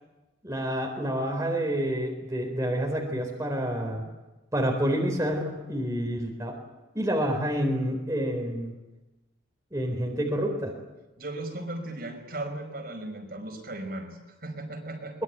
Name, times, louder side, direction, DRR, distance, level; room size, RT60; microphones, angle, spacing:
voice 1, 0.4-4.0 4.5-6.6 6.9-8.7 9.7-10.7, equal, 15° right, 1 dB, 4.1 m, -28 dB
voice 2, 11.2-15.2, right 1 dB, 50° right, 3 dB, 5.2 m, -37 dB
23.0 x 21.5 x 9.4 m, 1.1 s
head